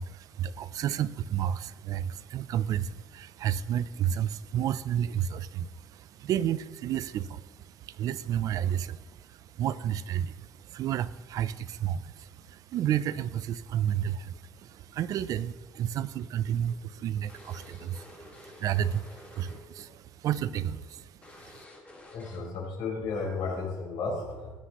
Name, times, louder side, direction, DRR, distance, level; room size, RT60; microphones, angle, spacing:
voice 1, 0.0-21.1 21.5-21.6, right 10 dB, 50° right, 16 dB, 0.4 m, -31 dB
sound 1, 16.2-19.8 20.1-20.3 20.7-20.8 21.2-22.7, left 2 dB, 15° left, 1.8 m, -51 dB
voice 2, 22.1-24.5, left 4 dB, 80° left, -2 dB, 4.4 m, -33 dB
17.0 x 9.8 x 3.0 m, 1.3 s
cardioid pair, 175°, 8 cm